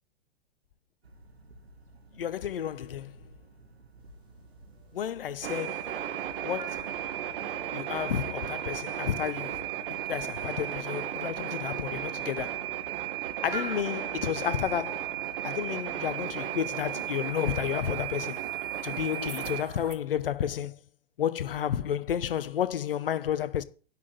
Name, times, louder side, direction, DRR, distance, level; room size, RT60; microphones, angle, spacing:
sound 1, 1.0-19.9, right 3 dB, 80° right, 2.0 m, -51 dB
voice 1, 2.1-3.1 4.9-5.9 6.4-6.9 7.7-12.7 13.4-18.4 18.8-20.8 21.2-23.6, left 9 dB, 65° left, 1.0 m, -31 dB
sound 2, 4.0-15.9, right 2 dB, 15° right, 3.7 m, -50 dB
sound 3, 5.4-19.6, right 11 dB, 60° right, 2.3 m, -35 dB
11.0 x 6.0 x 8.9 m
figure-of-eight pair, 105°, 31 cm